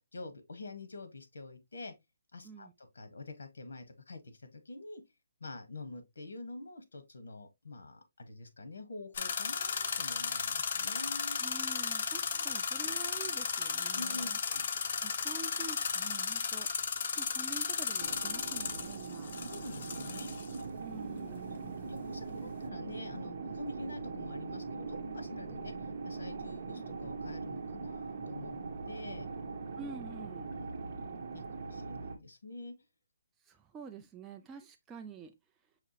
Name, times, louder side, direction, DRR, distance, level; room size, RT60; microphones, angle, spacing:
voice 1, 0.0-1.9 2.3-5.0 5.4-11.4 13.9-14.7 19.5-20.3 21.8-25.7 26.0-29.3 30.6-30.7 31.3-32.7, left 2 dB, 85° left, 1.3 m, -46 dB
sound 1, 9.1-20.6, left 6 dB, 45° left, 0.6 m, -35 dB
voice 2, 11.4-14.4 15.0-19.4 20.8-22.0 29.8-30.5 33.4-35.3, right 5 dB, 10° right, 0.3 m, -48 dB
sound 2, 18.0-32.2, right 4 dB, 40° right, 1.1 m, -41 dB
5.8 x 2.9 x 2.8 m
hypercardioid pair, 170°, 0 cm